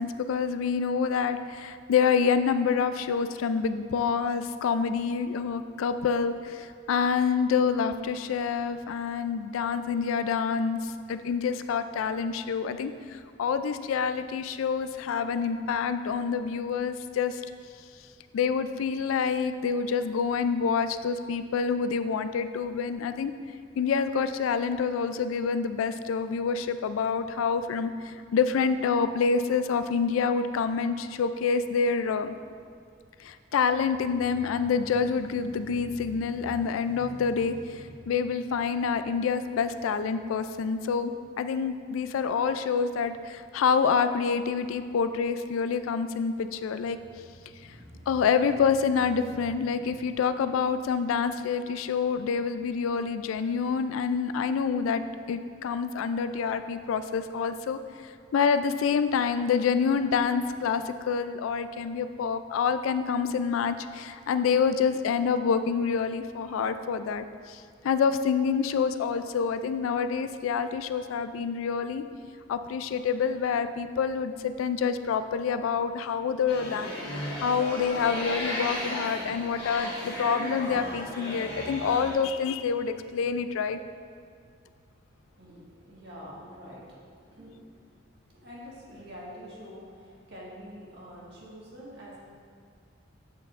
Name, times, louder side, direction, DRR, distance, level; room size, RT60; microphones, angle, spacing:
voice 1, 0.0-17.4 18.3-23.3 23.8-32.4 33.2-47.0 48.1-55.0 55.3-72.0 72.5-76.9 77.4-83.8, left 6 dB, 90° left, 10 dB, 0.3 m, -27 dB
sound 1, 33.6-41.7 42.2-42.3 46.8-51.3, equal, 75° right, 1.2 m, -49 dB
sound 2, 76.5-82.1, left 1 dB, 55° left, 1.5 m, -35 dB
voice 2, 85.1-92.2, equal, 55° right, -6 dB, 1.6 m, -46 dB
7.9 x 6.7 x 2.5 m, 2.2 s
head